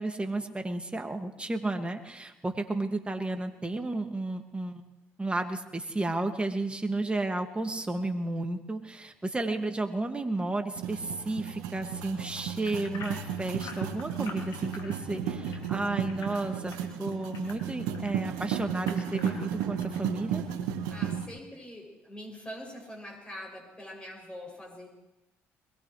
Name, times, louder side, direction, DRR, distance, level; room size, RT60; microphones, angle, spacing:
voice 1, 0.0-4.8 5.2-20.4, right 2 dB, 15° right, 4 dB, 2.2 m, -32 dB
sound 1, 10.8-21.3, right 8 dB, 80° right, 1.3 m, -34 dB
sound 2, 12.6-18.1 18.6-20.0 20.5-20.6 21.1-21.2, left 4 dB, 65° left, 3.3 m, -46 dB
voice 2, 20.9-24.9, equal, 15° left, -1 dB, 7.5 m, -43 dB
22.0 x 20.0 x 3.4 m, 0.96 s
hypercardioid pair, 60°, 6 cm